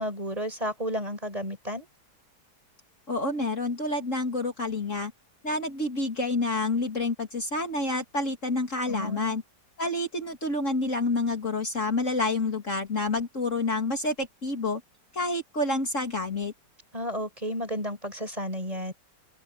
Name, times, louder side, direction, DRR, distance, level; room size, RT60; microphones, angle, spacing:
voice 1, 0.0-1.9 8.9-9.4 16.9-18.9, equal, 20° right, 5.6 m, -32 dB
voice 2, 3.1-5.1 5.4-9.4 9.8-14.8 15.1-16.5, left 2 dB, 45° left, 3.0 m, -28 dB
omnidirectional pair, 1.9 m